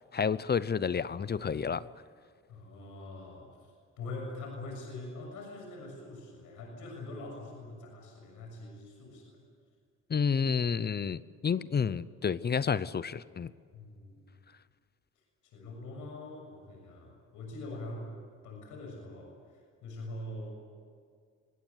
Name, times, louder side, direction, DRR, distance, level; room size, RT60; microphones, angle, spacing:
voice 1, 0.1-1.9 10.1-13.5, left 6 dB, 35° left, 17 dB, 0.7 m, -30 dB
voice 2, 2.5-9.4 13.7-14.3 15.1-18.1 18.4-20.5, left 2 dB, 90° left, 1 dB, 6.8 m, -44 dB
25.0 x 18.5 x 9.8 m, 2.1 s
cardioid pair, 90°, 30 cm